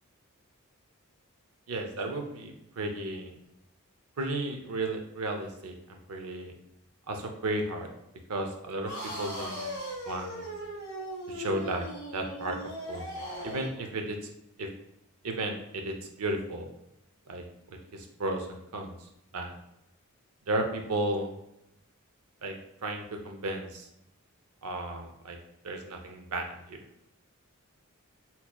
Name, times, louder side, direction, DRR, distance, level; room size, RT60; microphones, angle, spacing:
voice 1, 1.7-3.4 4.2-6.5 7.1-7.9 8.3-8.9 9.2-9.7 10.1-10.5 11.3-11.8 12.1-12.6 12.9-14.2 14.6-14.7 15.2-16.7 17.3-17.4 17.9-18.9 19.3-19.5 20.5-21.3 22.4-22.6 22.8-23.9 24.6-25.4 25.6-26.8, right 2 dB, 90° right, 4 dB, 0.6 m, -34 dB
sound 1, 8.9-13.8, equal, 60° left, 1.3 m, -38 dB
4.3 x 2.8 x 2.3 m, 0.83 s
head